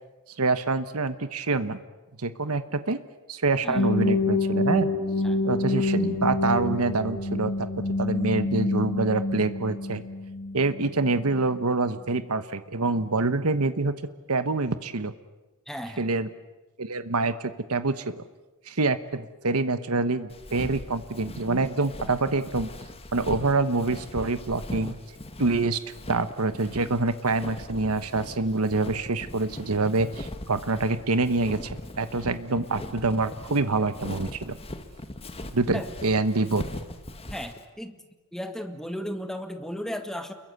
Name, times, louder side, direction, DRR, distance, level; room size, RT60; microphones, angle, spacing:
voice 1, 0.4-1.8 2.2-3.0 3.3-4.9 5.4-7.7 8.0-10.0 10.5-14.0 14.3-15.1 16.0-16.3 16.8-18.2 18.7-22.7 23.1-24.9 25.4-25.8 26.1-34.6 35.5-36.6, right 3 dB, 85° right, 11 dB, 1.2 m, -26 dB
sound 1, 3.7-11.6, left 2 dB, 60° left, 2.2 m, -27 dB
voice 2, 15.7-16.1 35.7-35.9 37.3-38.0 38.3-40.3, equal, ahead, 6 dB, 1.9 m, -35 dB
Walk footsteps, 20.3-37.6, left 1 dB, 25° left, 1.8 m, -40 dB
29.0 x 22.0 x 8.2 m, 1.1 s
head